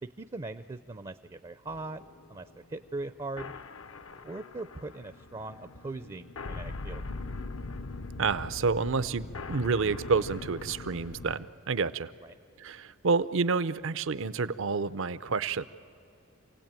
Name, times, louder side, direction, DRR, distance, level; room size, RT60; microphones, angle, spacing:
voice 1, 0.0-3.5 4.2-7.0 12.2-12.3, right 2 dB, 25° right, 12 dB, 0.5 m, -40 dB
sound 1, 1.7-11.4, left 3 dB, 70° left, 0.7 m, -41 dB
voice 2, 8.2-12.1 12.6-15.6, right 4 dB, 65° right, 16 dB, 0.6 m, -29 dB
27.5 x 17.5 x 9.0 m, 2.7 s
head